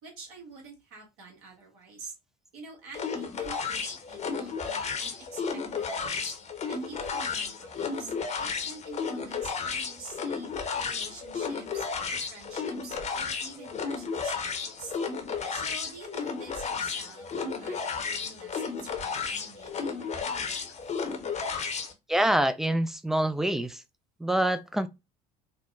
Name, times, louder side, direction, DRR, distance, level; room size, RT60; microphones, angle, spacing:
voice 1, 0.0-2.1 2.5-6.3 6.7-8.1 8.4-10.5 10.8-11.9 12.1-15.0 15.5-20.7, right 3 dB, 65° right, 1.4 m, -47 dB
sound 1, 2.9-21.9, left 5 dB, 35° left, 0.8 m, -33 dB
voice 2, 22.1-23.8 24.2-24.9, right 1 dB, ahead, 0.3 m, -26 dB
4.4 x 2.1 x 2.3 m
hypercardioid pair, 65°, 21 cm